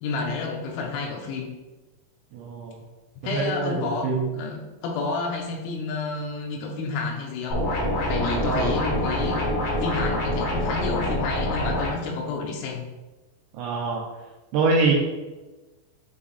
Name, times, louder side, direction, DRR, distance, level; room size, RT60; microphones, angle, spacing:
voice 1, 0.0-1.5 3.2-7.6 8.1-12.8, left 4 dB, 85° left, 1 dB, 3.7 m, -30 dB
voice 2, 2.3-2.8 3.3-4.3 8.4-8.8 13.6-14.0 14.5-14.9, right 4 dB, 85° right, -1 dB, 2.6 m, -24 dB
sound 1, 7.5-11.9, left 1 dB, 55° left, 2.9 m, -25 dB
8.4 x 2.9 x 4.1 m, 1.2 s
omnidirectional pair, 5.9 m